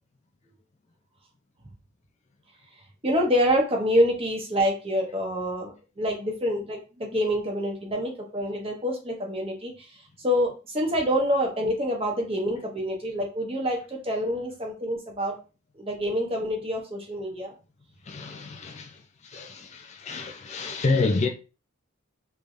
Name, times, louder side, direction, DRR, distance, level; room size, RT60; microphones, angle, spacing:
voice 1, 3.0-9.7 10.2-15.3 15.8-17.5, equal, 25° right, 1.0 m, -26 dB
voice 2, 18.1-18.9 19.2-21.3, left 3 dB, 35° left, 0.4 m, -28 dB
3.4 x 3.3 x 2.6 m
head